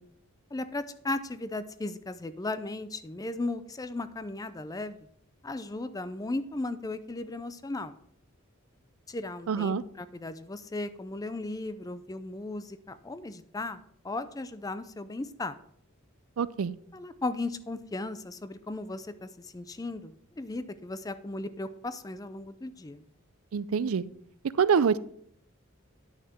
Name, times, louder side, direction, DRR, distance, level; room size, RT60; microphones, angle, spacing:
voice 1, 0.5-5.0 5.4-7.9 9.1-15.6 16.9-23.0, left 2 dB, 15° left, 13 dB, 0.4 m, -36 dB
voice 2, 9.5-9.8 16.4-16.7 23.5-24.0 24.6-25.0, right 6 dB, 85° right, 18 dB, 0.4 m, -25 dB
9.8 x 6.4 x 4.4 m, 0.67 s
head